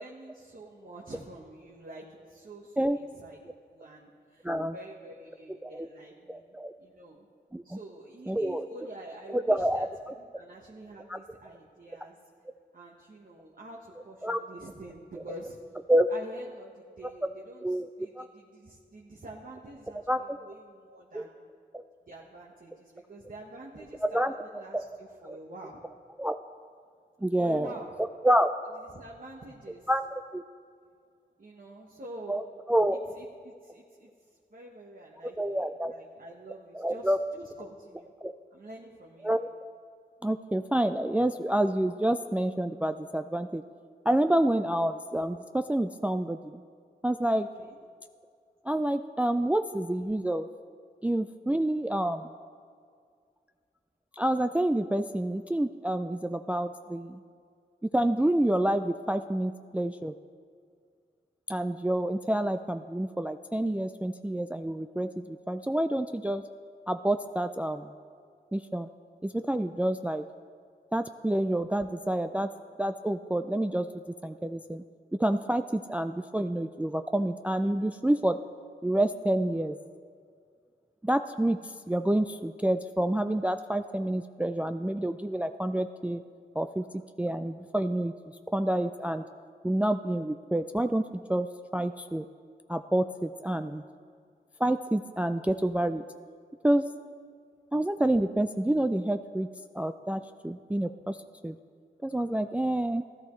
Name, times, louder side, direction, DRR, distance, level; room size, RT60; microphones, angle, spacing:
voice 1, 0.0-3.4 3.7-6.4 6.8-7.3 7.6-9.9 10.2-12.2 12.7-15.6 16.1-21.3 22.1-25.8 27.4-28.0 28.9-29.9 31.4-32.4 32.9-38.1 38.5-39.4 47.6-47.8, right 1 dB, 50° right, -3 dB, 1.3 m, -47 dB
voice 2, 6.3-6.7 7.5-7.8 8.3-8.7 9.3-9.9 11.1-11.2 14.2-14.4 15.9-16.1 17.6-17.9 18.2-18.3 20.1-20.2 21.1-21.3 24.0-24.3 24.7-24.8 25.3-25.4 26.2-26.4 27.2-27.7 28.2-28.5 29.9-30.0 30.3-30.4 32.3-32.4 32.7-33.0 35.4-35.9 36.7-37.2 38.2-38.3 39.2-39.5 40.2-43.6 44.1-46.6 47.0-47.5 48.7-50.5 51.0-52.3 54.1-57.2 57.9-60.1 61.5-66.4 66.9-67.9 68.5-68.9 69.2-70.2 70.9-72.5 72.8-73.9 74.2-74.8 75.2-78.4 78.8-79.8 81.0-81.6 81.9-86.2 86.6-88.1 88.5-89.2 89.6-92.3 92.7-93.8 94.6-96.0 96.6-96.8 97.7-99.5 99.7-101.2 101.4-101.6 102.0-103.0, right 1 dB, 10° right, 9 dB, 0.3 m, -28 dB
15.5 x 11.5 x 3.2 m, 2.1 s
cardioid pair, 50°, 18 cm